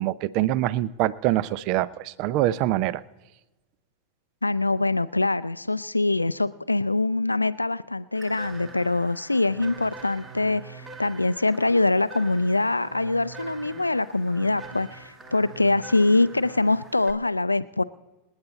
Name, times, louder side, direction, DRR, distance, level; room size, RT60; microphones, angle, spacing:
voice 1, 0.0-3.0, right 15 dB, 45° right, 20 dB, 0.5 m, -24 dB
voice 2, 4.4-17.8, left 2 dB, 85° left, 16 dB, 0.4 m, -24 dB
sound 1, 8.1-17.1, right 3 dB, 15° right, 1.6 m, -44 dB
26.5 x 9.7 x 4.0 m, 1.1 s
figure-of-eight pair, 90°, 0 cm